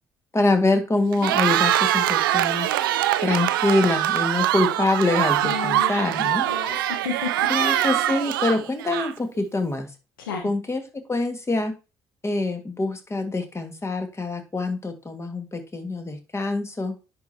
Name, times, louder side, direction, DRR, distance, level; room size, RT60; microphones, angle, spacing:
voice 1, 0.3-2.7 3.2-6.5 7.5-9.9 10.4-11.7 12.2-17.0, left 2 dB, 25° left, 6 dB, 1.9 m, -25 dB
Cheering, 1.1-9.4, right 13 dB, 85° right, 0.4 m, -23 dB
voice 2, 5.4-8.0 10.2-10.5, left 6 dB, 85° left, 2 dB, 1.3 m, -33 dB
10.0 x 5.0 x 2.9 m, 0.30 s
hypercardioid pair, 50°, 11 cm